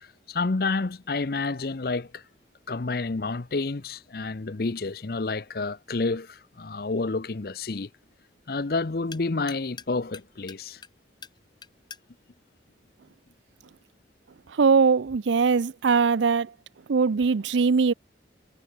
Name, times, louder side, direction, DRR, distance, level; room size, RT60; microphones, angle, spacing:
voice 1, 0.0-2.2 2.7-7.9 8.5-10.8, left 3 dB, 55° left, 0.7 m, -29 dB
sound 1, 6.2-13.7, left 6 dB, 25° left, 2.1 m, -50 dB
voice 2, 14.6-16.5 16.9-17.9, right 5 dB, 80° right, 0.5 m, -21 dB
head